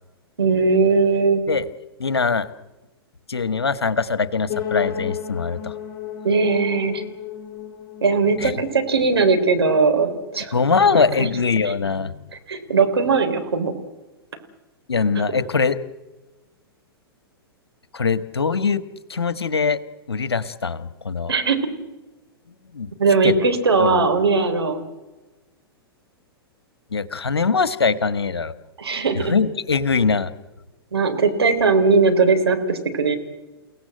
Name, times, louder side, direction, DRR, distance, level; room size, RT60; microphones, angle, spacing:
voice 1, 0.4-1.4 6.2-7.0 8.0-10.5 11.2-11.3 11.6-11.7 12.5-13.7 21.3-21.6 23.0-24.8 28.8-29.3 30.9-33.2, right 4 dB, 80° right, 6 dB, 3.7 m, -19 dB
voice 2, 2.0-2.5 3.3-5.7 8.4-8.5 10.5-12.3 14.9-15.8 17.9-18.8 19.1-19.8 20.1-21.3 22.7-22.9 23.2-23.4 23.8-24.1 26.9-28.5 29.1-30.3, left 5 dB, 80° left, 13 dB, 1.4 m, -22 dB
sound 1, 4.5-10.4, left 10 dB, 25° left, 5.9 m, -33 dB
30.0 x 17.5 x 7.8 m, 1.1 s
figure-of-eight pair, 110°, 13 cm